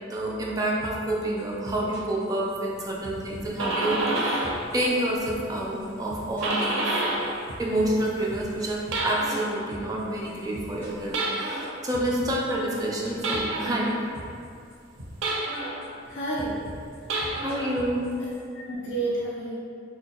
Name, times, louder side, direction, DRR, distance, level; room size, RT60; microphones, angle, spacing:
voice 1, 0.1-4.4 4.7-6.9 7.6-13.9 17.4-18.1, right 1 dB, 20° right, -4 dB, 0.3 m, -28 dB
sound 1, 0.8-1.1 1.4-2.8 3.0-5.0 5.3-5.6 5.8-10.0 10.3-11.7 11.9-13.9 14.1-14.4 14.7-15.6 15.8-18.4, equal, 15° left, 1.2 m, -43 dB
sound 2, 3.3-4.7 5.0-7.4 7.7-9.6 11.1-11.8 13.2-13.9 15.2-15.9 17.0-17.8, right 2 dB, 85° right, 0.4 m, -29 dB
voice 2, 16.1-16.8 17.3-17.4 18.2-19.6, right 2 dB, 70° left, -5 dB, 0.4 m, -31 dB
3.0 x 2.2 x 2.8 m, 2.3 s
head